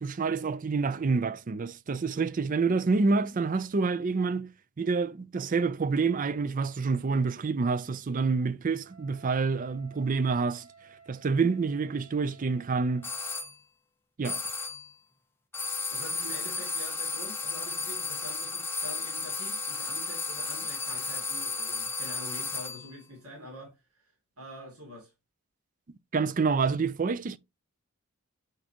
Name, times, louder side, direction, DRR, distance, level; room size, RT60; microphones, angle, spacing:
voice 1, 0.0-4.5 4.8-10.7 11.1-13.1 14.2-14.4 26.1-27.4, right 4 dB, 35° right, 0.4 m, -27 dB
Wind instrument woodwind instrument, 8.8-13.5, right 5 dB, 65° right, 2.3 m, -55 dB
sound 1, 13.0-13.5 14.2-14.9 15.5-22.9, left 3 dB, 10° left, 0.6 m, -34 dB
voice 2, 15.9-24.1 24.4-25.1, equal, 80° right, 2.6 m, -46 dB
7.8 x 4.2 x 2.9 m
head